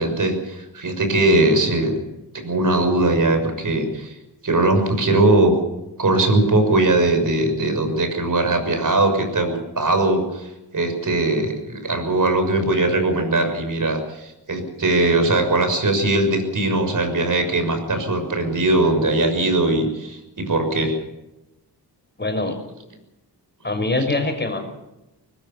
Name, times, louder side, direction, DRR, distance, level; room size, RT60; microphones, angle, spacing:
voice 1, 0.0-2.0 2.3-4.1 4.4-5.5 6.0-20.9, right 2 dB, 50° right, 6 dB, 6.6 m, -20 dB
voice 2, 22.2-22.6 23.6-24.7, left 2 dB, 25° left, 6 dB, 5.6 m, -23 dB
21.5 x 20.5 x 7.0 m, 0.93 s
wide cardioid pair, 85°, 40 cm